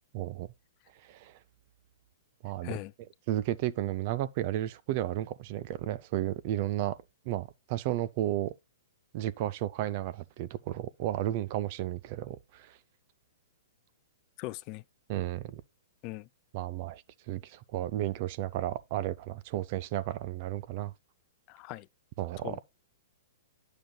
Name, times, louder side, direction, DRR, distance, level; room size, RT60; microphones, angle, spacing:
voice 1, 0.1-0.5 1.0-1.3 2.4-2.8 3.3-7.0 7.3-8.5 9.1-12.8 15.1-15.6 16.5-20.9 22.2-22.6, right 13 dB, 45° right, 0.5 m, -33 dB
voice 2, 2.6-2.9 14.4-14.8 16.0-16.3 21.5-21.9 22.4-22.6, left 19 dB, 35° left, 0.3 m, -39 dB
10.0 x 6.7 x 2.3 m
figure-of-eight pair, 110°, 0 cm